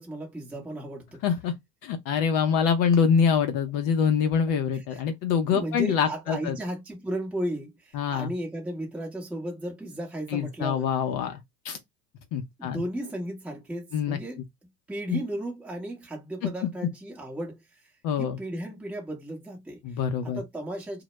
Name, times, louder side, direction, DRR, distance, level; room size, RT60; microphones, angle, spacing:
voice 1, 0.0-1.2 4.7-5.0 5.5-10.9 12.6-17.8 18.2-19.8 20.2-21.0, right 1 dB, 5° right, 0.8 m, -35 dB
voice 2, 1.2-1.5 1.8-6.5 7.9-8.3 10.3-11.4 11.6-11.8 12.3-12.8 13.9-14.2 18.0-18.4 19.8-20.4, left 7 dB, 45° left, 0.6 m, -25 dB
2.1 x 2.0 x 3.0 m
hypercardioid pair, 100°, 48 cm